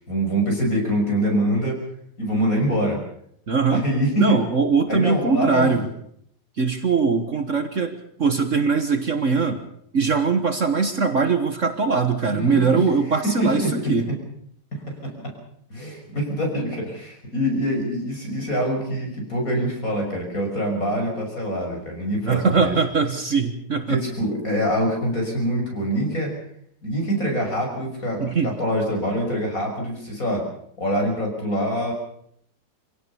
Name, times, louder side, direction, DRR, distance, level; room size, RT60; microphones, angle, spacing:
voice 1, 0.0-1.8 2.2-3.0 3.7-4.4 4.9-5.7 12.3-12.8 13.2-13.7 14.1-14.2 14.7-15.3 15.7-22.7 23.9-26.4 26.8-30.5 30.8-31.9, equal, 50° left, 1 dB, 6.6 m, -24 dB
voice 2, 3.5-3.8 4.2-5.9 6.6-9.6 9.9-14.1 22.2-24.0 28.2-28.5, right 4 dB, 45° right, 8 dB, 1.6 m, -21 dB
25.0 x 17.0 x 7.0 m, 0.68 s
omnidirectional pair, 1.9 m